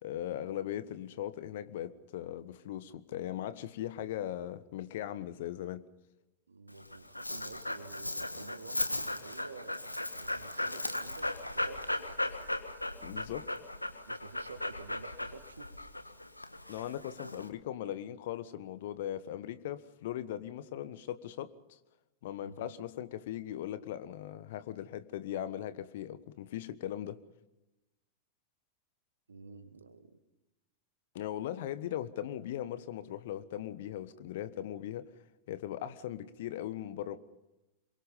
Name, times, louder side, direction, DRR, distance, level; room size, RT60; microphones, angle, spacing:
voice 1, 0.0-5.8 13.0-13.5 16.7-21.8 22.2-27.2 31.1-35.1 35.5-37.2, left 11 dB, 55° left, 14 dB, 1.3 m, -39 dB
voice 2, 6.5-9.9 10.2-12.4 14.1-15.8 22.4-22.7 29.3-30.2, right 4 dB, 75° right, 10 dB, 2.0 m, -50 dB
Dog, 6.7-17.5, left 1 dB, 85° left, 1.6 m, -37 dB
27.0 x 23.0 x 5.4 m, 1.0 s
figure-of-eight pair, 90°, 0 cm